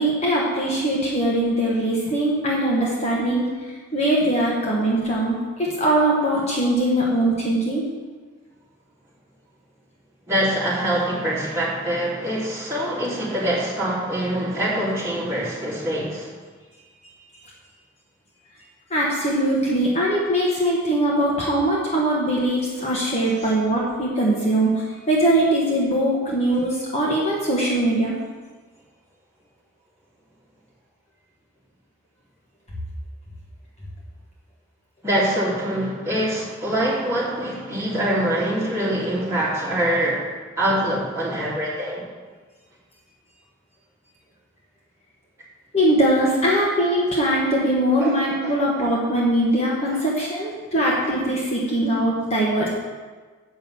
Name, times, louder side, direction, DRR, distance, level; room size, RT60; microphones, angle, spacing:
voice 1, 0.0-3.5 3.9-7.9 18.9-28.2 45.7-52.7, right 1 dB, 30° left, -4 dB, 1.3 m, -21 dB
voice 2, 10.3-16.3 35.0-40.3 40.6-42.0 48.0-48.1 48.4-48.5, right 1 dB, 15° right, -9 dB, 3.0 m, -24 dB
7.9 x 5.8 x 7.1 m, 1.4 s
head